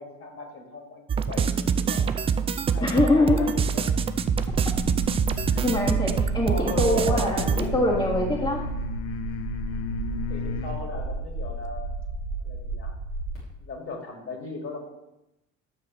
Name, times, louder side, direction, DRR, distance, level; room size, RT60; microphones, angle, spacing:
voice 1, 0.0-2.2 2.7-3.9 5.5-5.6 6.5-7.7 10.3-11.9 12.4-12.9 13.6-14.9, left 3 dB, 35° left, 1 dB, 2.3 m, -37 dB
sound 1, 1.1-7.7, right 6 dB, 15° right, 0.3 m, -25 dB
voice 2, 2.8-3.5 5.6-8.7, left 1 dB, 15° left, -4 dB, 1.7 m, -24 dB
sound 2, 3.5-10.9, left 7 dB, 60° left, 0.9 m, -37 dB
sound 3, 4.3-13.4, right 2 dB, 85° left, 2.9 m, -33 dB
11.5 x 7.4 x 3.1 m, 0.90 s
figure-of-eight pair, 60°, 39 cm